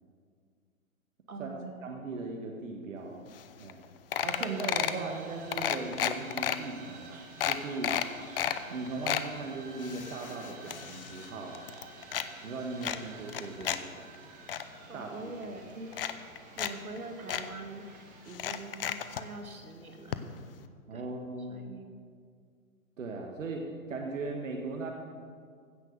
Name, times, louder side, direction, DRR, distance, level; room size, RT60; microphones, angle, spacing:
voice 1, 1.3-2.0 14.9-16.0 16.6-20.2 20.4-20.5 20.9-21.1 21.5-21.9, right 2 dB, 80° right, 5 dB, 1.9 m, -44 dB
voice 2, 1.8-3.2 3.6-3.8 4.2-7.9 8.7-11.6 12.4-14.0 14.9-15.3 20.9-21.6 23.0-24.9, right 3 dB, 65° right, 2 dB, 1.5 m, -38 dB
sound 1, 3.4-3.5 3.7-3.8 4.1-5.0 5.5-6.6 7.0-7.1 7.4-8.6 8.9-9.3 9.8-11.3 11.5-12.3 12.8-13.8 14.1-14.6 15.4-15.5 15.9-16.7 17.0-17.1 17.3-17.4 18.3-19.2 20.1-20.2 20.5-20.6, left 10 dB, 40° left, 0.7 m, -32 dB
sound 2, 4.2-18.4, right 4 dB, 20° right, 1.2 m, -51 dB
16.0 x 5.9 x 6.7 m, 2.1 s
figure-of-eight pair, 130°, 42 cm